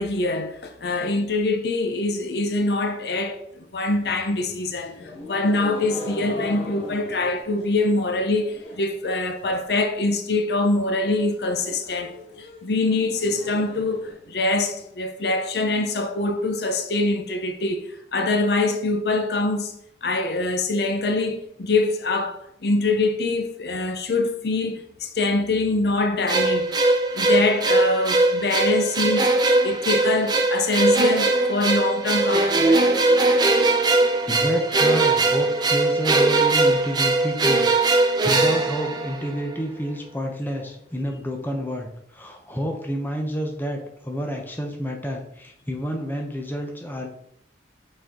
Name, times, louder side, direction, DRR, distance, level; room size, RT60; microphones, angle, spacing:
voice 1, 0.0-19.7 20.0-26.7 27.1-29.3 29.6-32.9, left 2 dB, 65° left, 0.6 m, -24 dB
sound 1, 3.9-9.0 9.3-9.8 10.1-10.2 10.5-10.6 10.9-14.9, left 2 dB, 85° left, 1.4 m, -40 dB
sound 2, 26.3-39.5, right 2 dB, 25° right, 0.6 m, -20 dB
voice 2, 34.3-47.1, equal, 10° left, 0.9 m, -29 dB
5.7 x 4.4 x 3.8 m
head